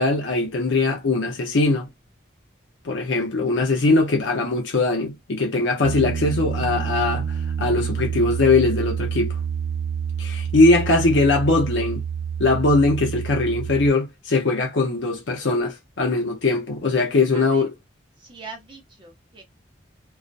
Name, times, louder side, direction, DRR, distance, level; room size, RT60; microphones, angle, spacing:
voice 1, 0.0-1.9 2.8-9.4 10.2-12.0 12.4-17.7, left 3 dB, 80° left, 0.6 m, -21 dB
Piano, 5.8-13.9, right 7 dB, 80° right, 0.6 m, -28 dB
voice 2, 17.3-17.6 18.2-19.4, right 3 dB, 25° right, 0.8 m, -41 dB
2.4 x 2.1 x 2.5 m
head